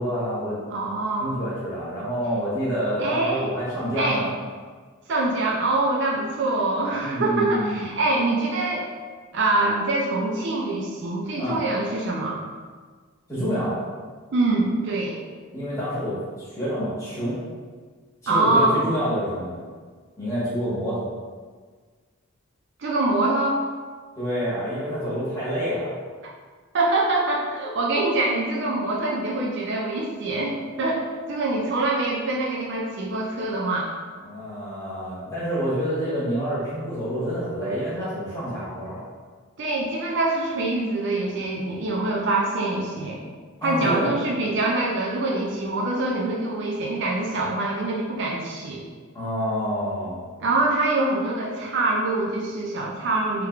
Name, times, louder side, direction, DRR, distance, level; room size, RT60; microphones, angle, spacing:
voice 1, 0.0-0.6 1.2-4.3 7.0-7.8 11.4-11.6 13.3-13.8 15.5-17.4 18.2-19.6 20.2-21.0 24.2-25.9 34.2-39.0 43.6-44.1 49.1-50.3, equal, 15° left, -10 dB, 1.2 m, -27 dB
voice 2, 0.7-1.4 3.0-3.5 4.0-4.2 5.1-8.9 9.3-12.4 14.3-15.2 18.3-18.8 22.8-23.6 26.7-33.9 39.6-43.2 43.6-48.8 50.4-53.5, right 2 dB, 55° right, -2 dB, 0.4 m, -24 dB
3.4 x 3.1 x 2.3 m, 1.5 s
head